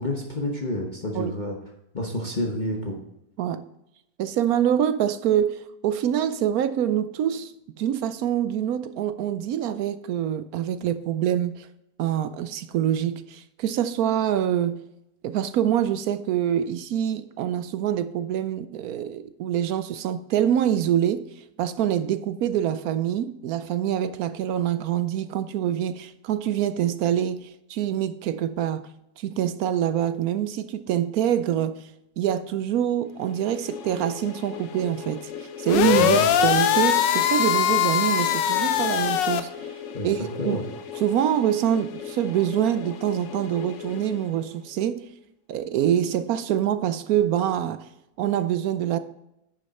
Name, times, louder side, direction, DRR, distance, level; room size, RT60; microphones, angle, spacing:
voice 1, 0.0-1.6 1.9-3.0 36.0-36.3 39.9-40.1 40.4-40.6, left 1 dB, 30° left, -1 dB, 1.1 m, -28 dB
voice 2, 4.2-11.7 12.0-14.8 15.2-21.2 21.6-28.9 29.2-31.9 32.2-35.3 35.6-39.8 40.0-40.6 41.0-45.0 45.5-47.8 48.2-49.0, right 10 dB, 70° right, 12 dB, 0.9 m, -25 dB
sound 1, 33.1-44.9, left 7 dB, 55° left, 0.9 m, -38 dB
sound 2, 35.7-39.4, left 10 dB, 80° left, 1.3 m, -21 dB
10.5 x 6.6 x 4.2 m, 0.83 s
omnidirectional pair, 1.9 m